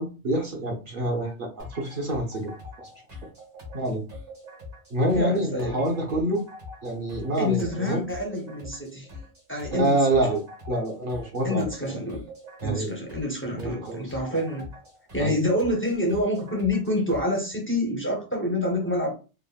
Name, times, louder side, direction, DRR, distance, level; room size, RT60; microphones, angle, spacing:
voice 1, 0.0-2.5 3.7-4.0 4.9-6.4 6.8-8.1 9.7-10.4 10.7-11.7 12.6-12.9 13.6-14.0 14.3-14.4 15.2-15.4, right 1 dB, 55° right, 0 dB, 0.7 m, -26 dB
sound 1, 1.6-17.5, left 2 dB, 75° right, 1.6 m, -44 dB
voice 2, 5.0-5.9 7.4-9.1 9.5-10.3 11.4-12.2 12.6-14.7 15.1-19.1, left 1 dB, 20° left, 0 dB, 0.3 m, -27 dB
3.4 x 2.0 x 2.2 m, 0.32 s
omnidirectional pair, 1.2 m